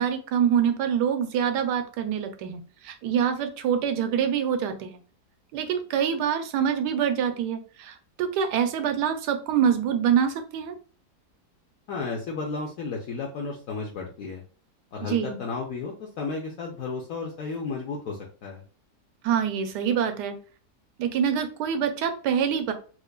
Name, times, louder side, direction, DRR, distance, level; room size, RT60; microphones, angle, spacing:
voice 1, 0.0-5.0 5.5-10.8 15.0-15.4 19.2-20.4 21.0-22.7, right 8 dB, 85° right, 7 dB, 1.2 m, -25 dB
voice 2, 11.9-14.4 14.9-18.6, left 4 dB, 65° left, -1 dB, 1.0 m, -33 dB
4.4 x 2.4 x 2.3 m, 0.39 s
omnidirectional pair, 1.8 m